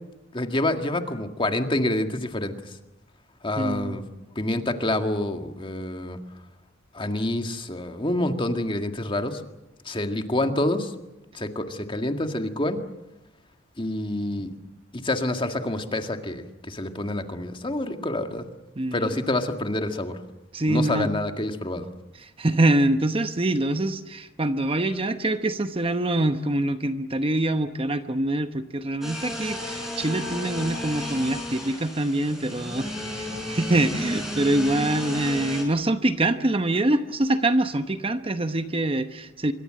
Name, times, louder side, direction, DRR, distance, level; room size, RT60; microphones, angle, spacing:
voice 1, 0.3-2.7 3.4-4.0 4.4-6.2 6.9-9.4 9.9-10.9 11.3-12.8 13.8-14.5 14.9-18.4 18.9-20.2 20.7-21.9, left 1 dB, 25° left, 6 dB, 1.9 m, -27 dB
voice 2, 3.6-4.0 18.8-19.1 20.5-21.1 22.2-39.5, right 1 dB, 30° right, 9 dB, 0.9 m, -25 dB
sound 1, 29.0-35.6, left 1 dB, ahead, 6.7 m, -33 dB
26.0 x 23.5 x 7.7 m, 0.98 s
head